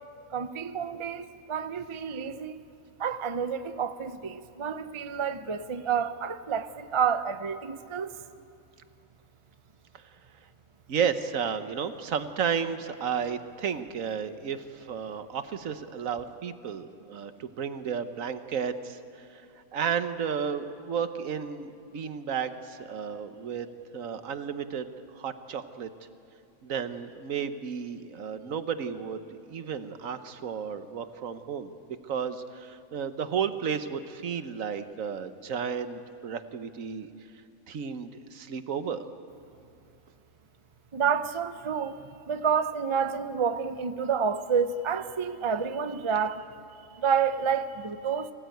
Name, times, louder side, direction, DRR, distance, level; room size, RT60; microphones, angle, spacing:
voice 1, 0.3-2.6 3.0-8.1 40.9-46.4 46.9-48.3, right 7 dB, 30° right, 0.6 m, -29 dB
voice 2, 10.9-19.4 19.7-23.7 23.9-24.9 25.1-25.9 26.6-29.2 29.5-37.1 37.7-39.0, right 7 dB, 70° right, 1.4 m, -33 dB
24.5 x 16.5 x 9.2 m
omnidirectional pair, 1.4 m